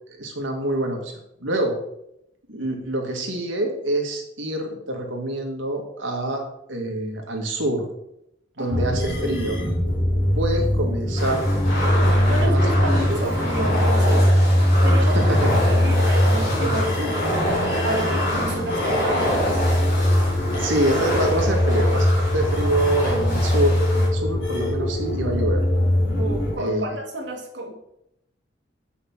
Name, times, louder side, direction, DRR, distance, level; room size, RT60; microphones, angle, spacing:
voice 1, 0.1-1.1 1.4-1.7 2.5-6.4 6.7-7.9 8.6-9.6 10.4-11.5 12.0-13.2 15.0-15.6 20.5-22.1 22.3-25.6 26.5-26.9, right 1 dB, 80° right, 2 dB, 2.1 m, -26 dB
voice 2, 8.6-8.9 12.3-14.3 14.6-17.4 17.8-19.6 22.6-22.8 26.2-27.7, right 1 dB, 65° right, 1 dB, 1.9 m, -31 dB
sound 1, 8.7-26.5, equal, 65° left, 3.8 m, -21 dB
sound 2, 11.2-24.1, equal, 45° left, 3.8 m, -27 dB
7.7 x 5.7 x 6.0 m, 0.79 s
head